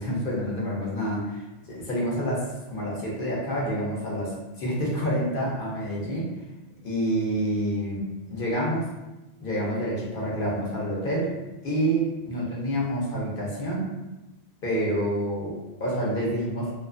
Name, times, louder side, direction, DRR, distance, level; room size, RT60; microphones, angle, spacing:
voice 1, 0.0-6.3 6.8-8.9 9.4-11.3 11.6-13.9 14.6-16.7, equal, 60° left, -5 dB, 0.9 m, -28 dB
2.4 x 2.4 x 2.4 m, 1.0 s
omnidirectional pair, 1.1 m